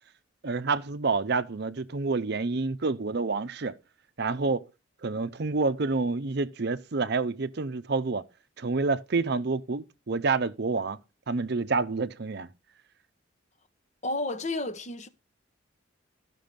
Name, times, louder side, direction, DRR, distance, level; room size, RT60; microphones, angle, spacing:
voice 1, 0.4-3.8 4.2-4.7 5.0-8.2 8.6-11.0 11.3-12.5, right 4 dB, 55° right, 0.6 m, -28 dB
voice 2, 14.0-15.1, left 2 dB, 35° left, 0.9 m, -31 dB
13.5 x 6.1 x 5.2 m
head